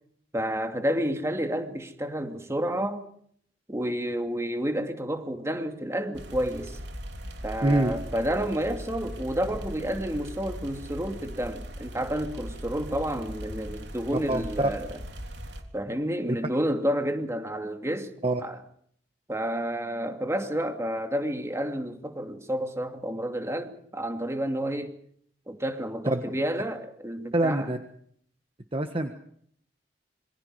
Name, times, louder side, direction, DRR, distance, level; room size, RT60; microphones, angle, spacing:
voice 1, 0.3-3.1 3.7-6.8 7.4-14.9 15.7-18.1 18.4-18.6 19.3-25.0 25.5-27.7, equal, 15° right, 2.6 m, -30 dB
sound 1, 6.1-15.6, equal, 70° right, 3.5 m, -39 dB
voice 2, 7.6-7.9 14.3-14.7 18.2-18.4 26.0-26.2 27.3-27.8 28.7-29.1, right 1 dB, 30° right, 1.5 m, -25 dB
27.5 x 24.5 x 4.9 m
head